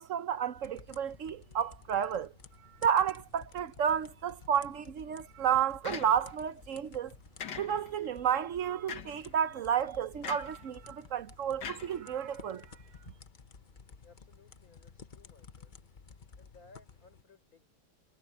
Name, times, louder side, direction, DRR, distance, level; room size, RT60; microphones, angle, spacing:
voice 1, 0.0-2.3 2.8-7.1 7.6-12.7, right 8 dB, 60° right, 0.9 m, -31 dB
sound 1, 0.5-17.2, left 5 dB, 35° left, 0.8 m, -54 dB
sound 2, 5.8-6.5 7.4-8.1 8.9-9.3 10.2-10.6 11.6-12.5, left 7 dB, 75° left, 2.0 m, -42 dB
voice 2, 14.0-15.8 16.4-17.7, left 3 dB, 55° left, 5.2 m, -60 dB
omnidirectional pair, 1.9 m